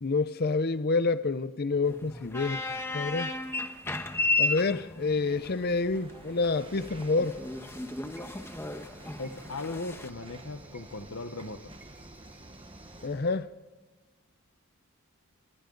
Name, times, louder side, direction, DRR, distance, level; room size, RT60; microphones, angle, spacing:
voice 1, 0.0-3.3 4.4-7.4 13.0-13.5, left 3 dB, 45° left, 0.6 m, -28 dB
sound 1, 1.8-10.1, left 2 dB, 10° left, 1.1 m, -34 dB
sound 2, 5.0-13.5, right 2 dB, 25° right, 1.1 m, -50 dB
sound 3, 6.6-13.1, right 2 dB, 10° right, 3.8 m, -57 dB
voice 2, 9.2-11.7, left 3 dB, 65° left, 1.1 m, -38 dB
28.0 x 26.5 x 3.9 m
head